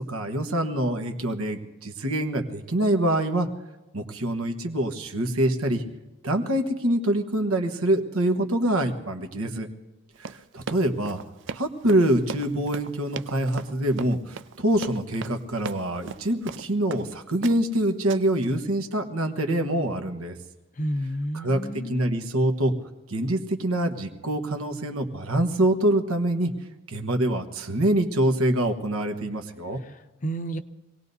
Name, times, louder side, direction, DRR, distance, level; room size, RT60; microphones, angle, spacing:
voice 1, 0.1-3.5 3.9-5.8 6.2-9.7 10.2-11.2 11.5-20.4 21.3-22.7 23.1-26.5 26.9-29.8, right 1 dB, 90° right, 6 dB, 1.4 m, -25 dB
Run, 10.1-17.1 17.4-17.8 18.1-18.4, right 5 dB, 55° right, 0.4 m, -38 dB
voice 2, 20.8-22.0 29.9-30.6, right 1 dB, 35° left, 11 dB, 0.6 m, -31 dB
26.0 x 18.0 x 2.7 m, 1.1 s
head